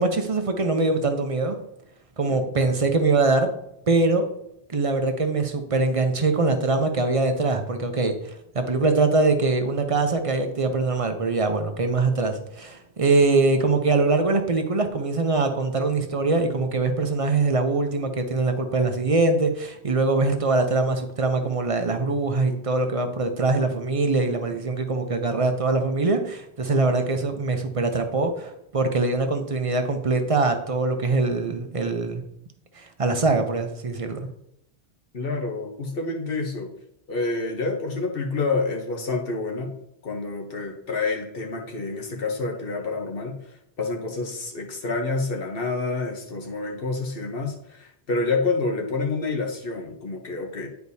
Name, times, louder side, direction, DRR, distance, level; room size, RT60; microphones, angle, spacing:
voice 1, 0.0-1.6 2.2-3.5 3.9-4.3 4.7-8.1 8.5-32.2 32.8-34.3, right 3 dB, 35° right, 6 dB, 0.7 m, -23 dB
voice 2, 35.1-36.7 37.1-39.7 40.0-43.4 43.8-50.7, left 3 dB, 60° left, 2 dB, 1.2 m, -28 dB
10.0 x 4.6 x 2.7 m, 0.76 s
omnidirectional pair, 1.1 m